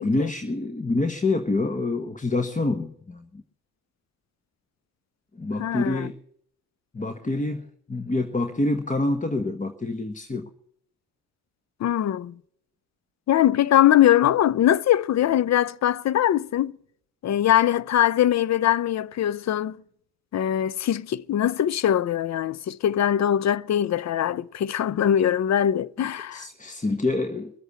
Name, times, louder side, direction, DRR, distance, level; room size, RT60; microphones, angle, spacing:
voice 1, 0.0-3.4 5.3-6.2 6.9-10.5 26.0-27.5, left 2 dB, 20° left, 1.1 m, -27 dB
voice 2, 5.6-6.0 11.8-12.3 13.3-16.8 17.2-19.8 20.3-26.4, left 11 dB, 50° left, 0.5 m, -22 dB
22.5 x 8.0 x 7.1 m
supercardioid pair, 60°, 37 cm